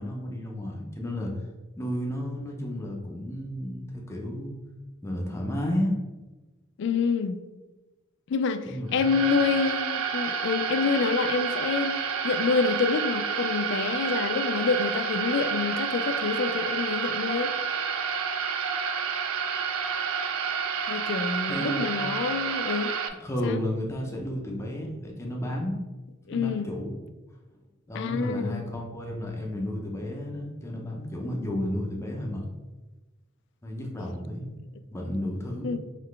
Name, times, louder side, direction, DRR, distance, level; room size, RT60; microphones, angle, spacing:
voice 1, 0.0-1.3 1.8-4.5 5.0-5.9 8.6-8.9 21.5-21.8 23.2-25.8 26.3-27.0 27.9-32.4 33.6-34.5 34.9-35.7, left 1 dB, 15° left, -1 dB, 0.6 m, -32 dB
voice 2, 6.8-7.4 8.3-17.5 20.9-22.9 23.4-23.6 26.3-26.7 27.9-28.6 35.6-35.8, left 5 dB, 60° left, 11 dB, 0.3 m, -27 dB
sound 1, 8.9-23.1, right 6 dB, 90° right, 0.4 m, -29 dB
4.0 x 3.2 x 3.2 m, 1.1 s
head